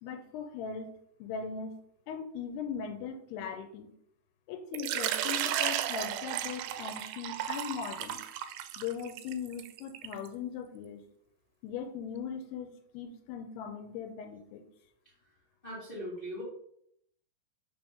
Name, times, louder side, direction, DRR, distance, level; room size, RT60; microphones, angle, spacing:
voice 1, 0.0-0.9 1.2-1.7 2.1-3.9 4.5-8.2 8.8-11.0 11.6-12.7 12.9-14.6, left 6 dB, 90° left, 7 dB, 2.6 m, -39 dB
Water / Liquid, 4.7-10.3, right 11 dB, 85° right, 2.5 m, -34 dB
voice 2, 15.6-16.4, equal, 40° left, -7 dB, 0.7 m, -39 dB
5.8 x 3.5 x 5.4 m, 0.71 s
omnidirectional pair, 4.5 m